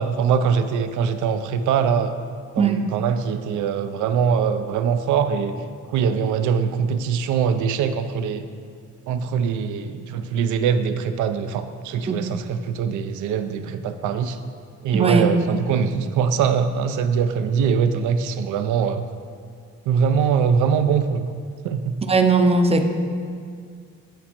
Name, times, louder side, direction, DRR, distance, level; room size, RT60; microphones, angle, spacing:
voice 1, 0.0-2.1 2.5-5.6 5.9-8.4 9.1-14.4 14.8-19.0 19.9-21.3 21.6-21.9, right 6 dB, 80° right, 9 dB, 0.4 m, -22 dB
voice 2, 14.9-15.3 22.1-22.9, right 4 dB, 20° right, 6 dB, 0.5 m, -18 dB
9.2 x 4.1 x 2.9 m, 2.2 s
cardioid pair, 90°, 30 cm